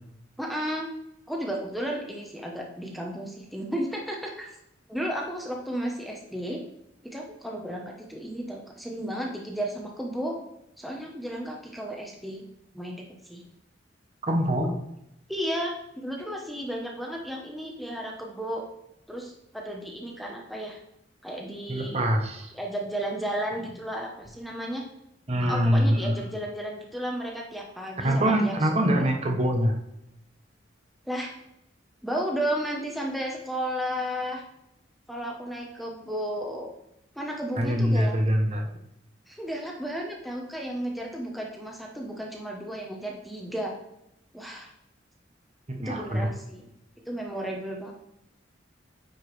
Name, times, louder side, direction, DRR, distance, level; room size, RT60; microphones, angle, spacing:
voice 1, 0.4-0.9 1.3-4.5 4.9-6.6 7.0-10.4 10.8-12.4 12.7-13.4 15.3-18.7 19.1-20.8 21.2-22.0 22.5-24.8 25.4-29.1 31.1-31.3 32.0-34.4 35.1-36.7 37.1-38.1 39.3-43.7 44.3-44.7 45.8-46.7 47.1-47.9, equal, ahead, -1 dB, 0.9 m, -33 dB
voice 2, 14.3-14.8 21.7-22.5 25.3-26.2 28.0-29.8 37.6-38.6 45.8-46.3, equal, 35° right, 2 dB, 0.9 m, -24 dB
9.0 x 4.9 x 3.2 m, 0.81 s
head